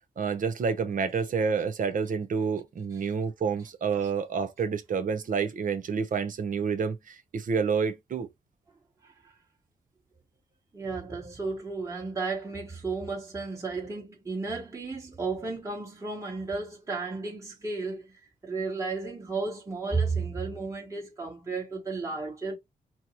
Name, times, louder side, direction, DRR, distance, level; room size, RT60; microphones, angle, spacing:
voice 1, 0.2-8.3, right 6 dB, 60° right, 0.7 m, -29 dB
voice 2, 10.7-22.6, right 4 dB, 20° right, 1.3 m, -33 dB
4.4 x 2.0 x 2.9 m
wide cardioid pair, 115°, 16 cm